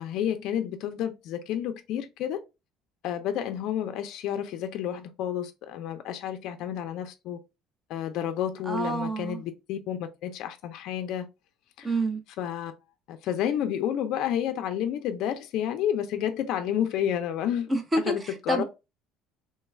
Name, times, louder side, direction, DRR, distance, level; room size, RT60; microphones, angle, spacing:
voice 1, 0.0-2.4 3.0-7.4 7.9-11.3 11.8-11.9 12.4-12.7 13.1-17.7 18.0-18.6, left 10 dB, 55° left, 0.4 m, -30 dB
voice 2, 8.7-9.4 11.8-12.2 17.7-18.6, right 2 dB, 15° right, 0.5 m, -28 dB
3.2 x 2.3 x 3.1 m
cardioid pair, 150°, 0 cm